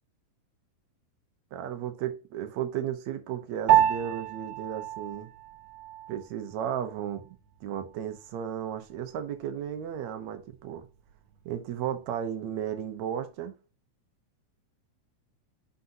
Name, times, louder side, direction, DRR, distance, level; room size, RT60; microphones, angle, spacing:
voice 1, 1.5-5.3 6.1-7.4 7.6-10.8 11.5-13.5, right 9 dB, 70° right, 2.2 m, -34 dB
Piano, 3.7-13.3, right 11 dB, 90° right, 2.3 m, -31 dB
9.6 x 4.2 x 2.8 m
omnidirectional pair, 3.5 m